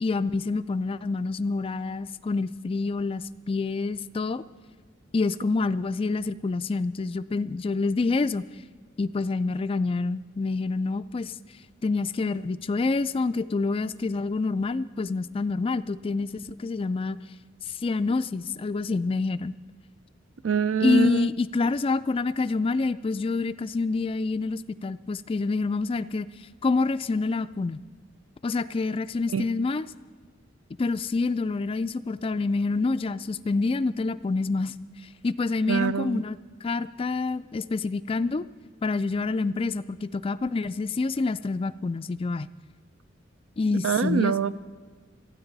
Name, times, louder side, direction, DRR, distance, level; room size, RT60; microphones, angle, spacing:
voice 1, 0.0-4.4 5.1-8.4 9.0-11.3 11.8-17.2 17.8-19.5 20.8-26.3 26.6-27.8 28.4-29.8 30.8-34.7 35.2-38.5 38.8-42.5 43.6-44.4, left 3 dB, 25° left, 13 dB, 0.3 m, -27 dB
voice 2, 20.4-21.3 29.3-29.4 35.7-36.2 43.8-44.5, right 6 dB, 70° right, 14 dB, 0.5 m, -24 dB
28.0 x 9.6 x 4.0 m, 1.5 s
head